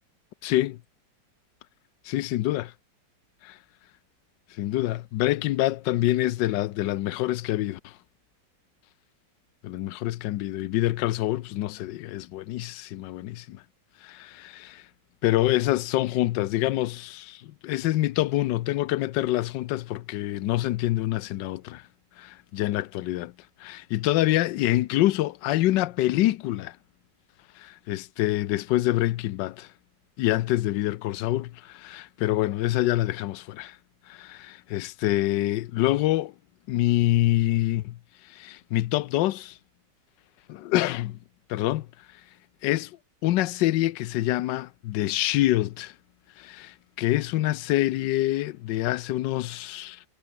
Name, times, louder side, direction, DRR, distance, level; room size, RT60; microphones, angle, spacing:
voice 1, 0.4-0.8 2.0-2.7 3.4-3.6 4.6-8.0 9.6-13.6 14.0-14.9 15.2-21.9 22.2-23.3 23.6-26.8 27.6-29.7 30.2-33.8 34.1-36.3 36.7-38.0 38.2-39.6 40.5-41.2 41.5-41.9 42.1-42.2 42.6-43.0 43.2-45.9 46.4-50.0, left 15 dB, 85° left, 1.3 m, -26 dB
omnidirectional pair, 1.9 m